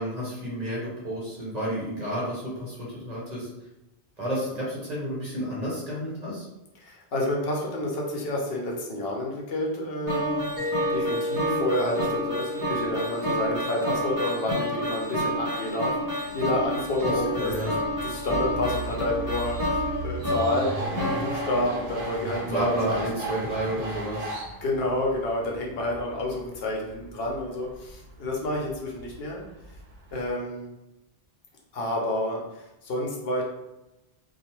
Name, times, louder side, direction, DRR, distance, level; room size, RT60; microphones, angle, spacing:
voice 1, 0.0-3.5 4.2-6.5 17.4-17.8 22.5-24.4, right 1 dB, 40° right, -6 dB, 1.0 m, -30 dB
voice 2, 6.8-17.7 18.0-23.3 24.6-29.4 30.1-30.7 31.7-33.4, left 1 dB, 70° left, -1 dB, 0.8 m, -29 dB
sound 1, 10.1-22.3, left 1 dB, 20° right, 0.8 m, -30 dB
Mallet percussion, 10.6-15.2, left 1 dB, 40° left, 1.0 m, -33 dB
sound 2, 16.3-30.3, right 2 dB, 80° right, 0.9 m, -38 dB
2.3 x 2.2 x 3.0 m, 0.94 s
omnidirectional pair, 1.1 m